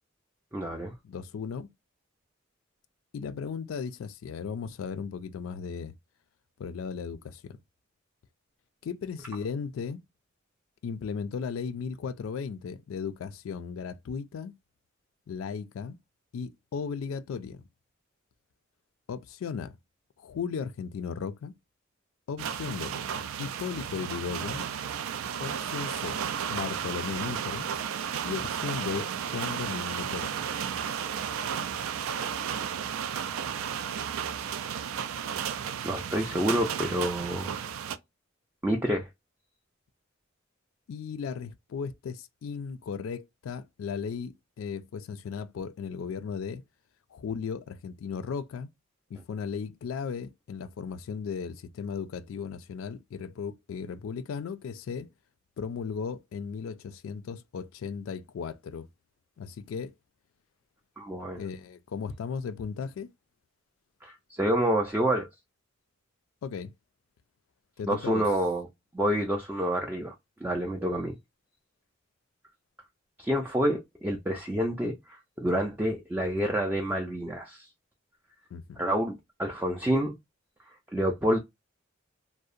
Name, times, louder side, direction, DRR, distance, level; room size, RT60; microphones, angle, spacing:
voice 1, 0.5-0.9 35.8-37.5 38.6-39.1 61.0-61.4 64.0-65.3 67.8-68.7 68.9-70.1 70.4-71.2 73.2-74.9 75.4-77.7 78.8-80.1 80.9-81.4, equal, 10° right, 0.3 m, -28 dB
voice 2, 1.0-1.7 3.1-5.9 6.6-7.6 8.8-10.0 10.8-14.5 15.3-16.0 16.3-17.6 19.1-19.7 20.2-21.5 22.3-22.9 23.4-24.7 25.4-26.2 26.5-27.7 28.2-30.4 40.9-46.6 47.1-48.7 49.1-55.1 55.6-58.9 59.4-59.9 61.4-63.1 66.4-66.7 67.8-68.3 78.5-78.8, left 6 dB, 75° left, 0.3 m, -36 dB
sound 1, 22.4-38.0, right 8 dB, 85° right, 0.3 m, -33 dB
2.7 x 2.0 x 2.4 m
head